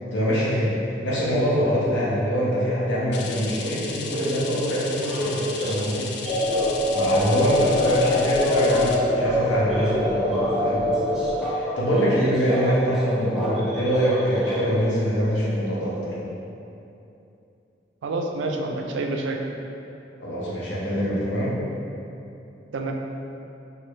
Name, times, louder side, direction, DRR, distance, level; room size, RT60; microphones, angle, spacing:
voice 1, 0.1-0.8 1.0-6.1 6.9-11.2 11.5-16.2 20.2-21.5, equal, 90° left, -7 dB, 0.8 m, -24 dB
sound 1, 3.1-9.0, left 4 dB, 60° left, 0.3 m, -36 dB
sound 2, 4.1-15.0, equal, ahead, 0.5 m, -32 dB
sound 3, 6.2-11.3, left 1 dB, 40° left, 1.0 m, -24 dB
voice 2, 18.0-19.4 22.7-22.9, right 2 dB, 85° right, 2 dB, 0.4 m, -27 dB
3.2 x 2.5 x 3.1 m, 2.7 s
head